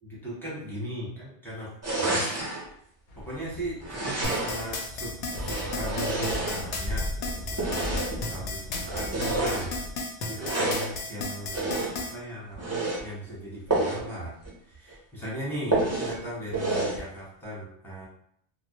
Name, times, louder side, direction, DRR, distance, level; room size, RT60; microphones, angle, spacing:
voice 1, 0.0-2.4 3.1-4.1 4.4-7.1 7.4-8.6 8.8-14.3 14.6-18.1, equal, ahead, -8 dB, 0.8 m, -38 dB
sound 1, 1.8-2.6 3.8-4.7 5.3-7.0 7.5-8.2 8.8-9.7 10.3-10.9 11.5-12.1 12.5-13.0 13.7-14.1 14.4-14.5 14.9-15.0 15.7-16.2 16.5-17.0, right 2 dB, 25° right, 0.4 m, -29 dB
sound 2, 3.1-9.9, left 1 dB, 55° left, 0.6 m, -37 dB
sound 3, 4.2-12.1, left 3 dB, 80° left, 0.9 m, -34 dB
2.2 x 2.0 x 2.8 m, 0.68 s
omnidirectional pair, 1.2 m